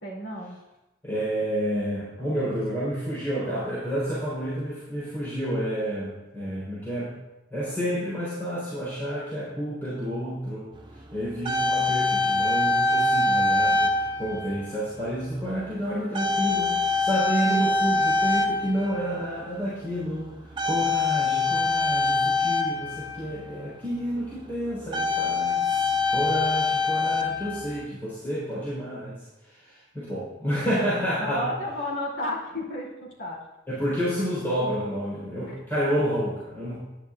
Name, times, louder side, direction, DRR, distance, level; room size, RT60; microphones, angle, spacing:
voice 1, 0.0-0.6 31.2-33.4 35.5-35.6, left 1 dB, 85° left, -6 dB, 2.7 m, -32 dB
voice 2, 1.0-7.2 7.5-10.7 11.1-29.2 29.5-31.5 33.7-36.8, equal, 10° left, -11 dB, 3.6 m, -30 dB
sound 1, 11.0-11.1 11.2-14.8 15.5-15.7 16.1-19.4 20.6-23.6 24.3-24.4 24.7-27.8, left 3 dB, 25° right, 0.6 m, -24 dB
12.5 x 9.9 x 2.4 m, 1.0 s
head